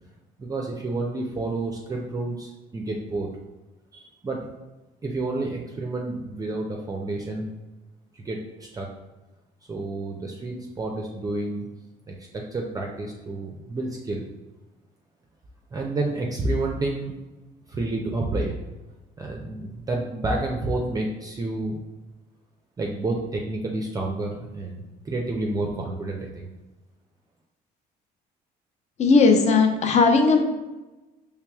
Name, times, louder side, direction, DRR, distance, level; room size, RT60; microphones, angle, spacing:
voice 1, 0.4-3.3 3.9-4.5 5.0-7.5 8.1-8.9 9.7-11.7 12.1-14.3 15.7-17.1 17.7-18.6 19.2-21.8 22.8-26.5, right 2 dB, 20° right, 0 dB, 0.5 m, -29 dB
voice 2, 29.0-30.4, left 4 dB, 40° left, 5 dB, 0.5 m, -17 dB
4.6 x 3.4 x 2.3 m, 1.1 s
cardioid pair, 110°, 17 cm